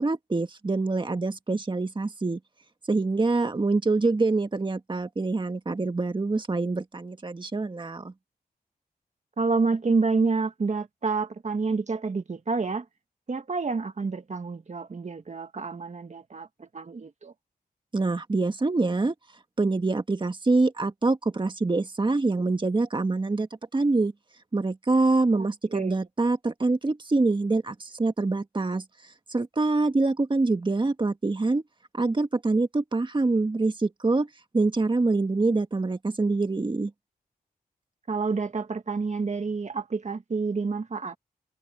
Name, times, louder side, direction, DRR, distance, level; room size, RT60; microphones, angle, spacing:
voice 1, 0.0-2.4 2.9-8.1 17.9-19.1 19.6-23.5 23.7-24.1 24.5-28.8 29.3-31.6 31.9-34.3 34.5-36.9, right 3 dB, 30° right, 1.8 m, -25 dB
voice 2, 9.4-12.9 13.3-17.3 25.3-25.5 25.7-26.0 38.1-41.2, right 4 dB, 45° right, 1.8 m, -28 dB
cardioid pair, 65°, 16 cm